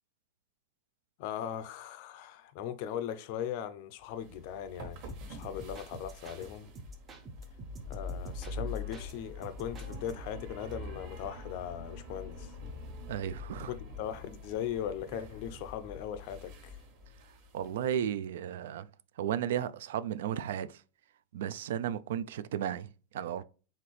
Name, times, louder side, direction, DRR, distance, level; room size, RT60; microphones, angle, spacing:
voice 1, 1.2-6.7 7.9-12.5 13.7-16.8, left 9 dB, 40° left, 0.5 m, -39 dB
sound 1, 4.1-18.0, left 2 dB, 35° right, 1.2 m, -45 dB
sound 2, 5.1-6.5 6.8-9.1 9.4-10.4, equal, 15° right, 0.6 m, -47 dB
voice 2, 13.1-13.7 17.5-18.9 19.2-20.8 21.3-23.4, right 10 dB, 70° right, 0.3 m, -34 dB
4.3 x 3.7 x 3.2 m
supercardioid pair, 175°, 0 cm